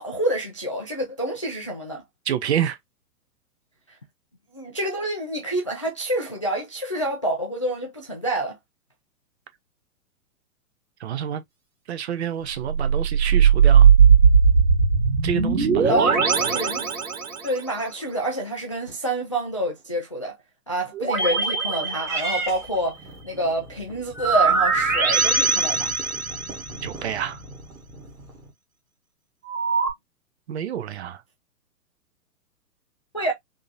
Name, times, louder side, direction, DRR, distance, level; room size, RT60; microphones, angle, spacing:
voice 1, 0.0-2.0 3.9-4.0 4.5-8.6 15.9-16.9 17.4-20.3 20.7-23.0 23.2-25.9 33.1-33.3, right 1 dB, 25° left, 0.3 m, -27 dB
voice 2, 2.3-2.8 11.0-11.4 11.9-13.9 15.2-16.2 16.5-16.6 26.8-27.4 30.5-31.2, right 9 dB, 45° right, 0.7 m, -28 dB
sound 1, 12.5-17.6 20.9-22.7 24.2-26.8 29.5-29.9, right 6 dB, 60° right, 1.8 m, -19 dB
Purr / Meow, 22.0-28.5, right 2 dB, 5° right, 1.2 m, -37 dB
3.7 x 2.8 x 2.4 m
figure-of-eight pair, 115°, 46 cm